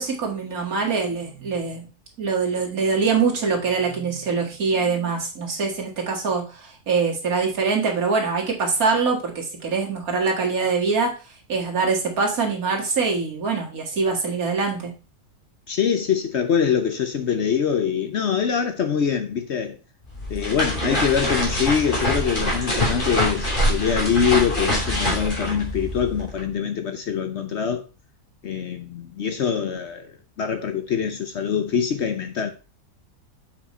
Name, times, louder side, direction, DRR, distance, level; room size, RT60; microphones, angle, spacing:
voice 1, 0.0-1.9 2.2-11.1 11.5-14.9, right 4 dB, 70° right, 2.3 m, -24 dB
voice 2, 15.7-19.8 20.3-27.8 28.4-30.1 30.4-32.5, left 7 dB, 55° left, 0.9 m, -24 dB
sound 1, 20.0-26.4, equal, 30° left, 3.1 m, -25 dB
7.4 x 5.3 x 4.2 m
omnidirectional pair, 1.6 m